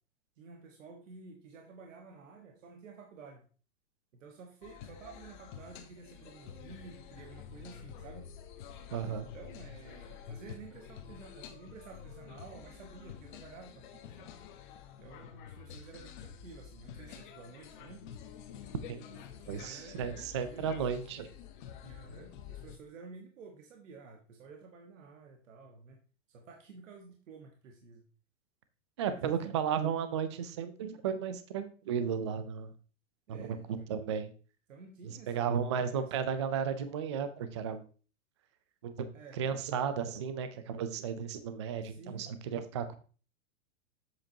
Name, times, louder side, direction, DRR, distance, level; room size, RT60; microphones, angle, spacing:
voice 1, 0.4-3.5 4.1-8.3 9.0-14.3 15.0-18.0 19.1-20.7 21.8-26.0 26.3-28.1 29.1-29.4 33.3-33.9 34.7-36.1 39.1-39.4 41.8-42.3, right 4 dB, 80° right, 3 dB, 1.4 m, -52 dB
sound 1, 4.6-22.8, left 8 dB, 40° left, 1.0 m, -49 dB
voice 2, 8.9-9.3 18.9-19.0 19.5-21.3 29.0-32.7 33.3-33.6 33.9-34.3 35.0-37.9 38.8-38.9 39.3-43.0, right 7 dB, 25° right, 11 dB, 0.3 m, -34 dB
7.7 x 7.3 x 2.8 m, 0.37 s
supercardioid pair, 160°, 38 cm